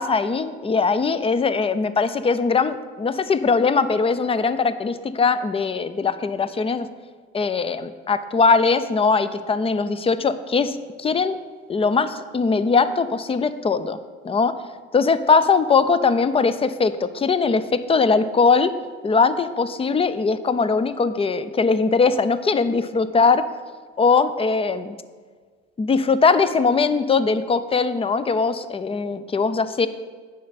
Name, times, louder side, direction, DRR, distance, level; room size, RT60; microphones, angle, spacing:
voice 1, 0.0-6.9 7.3-11.4 11.7-14.0 14.2-14.6 14.9-18.7 19.0-23.4 24.0-25.0 25.8-29.9, left 4 dB, 15° left, 13 dB, 0.4 m, -20 dB
9.3 x 6.6 x 4.1 m, 1.6 s
hypercardioid pair, 65°, 35 cm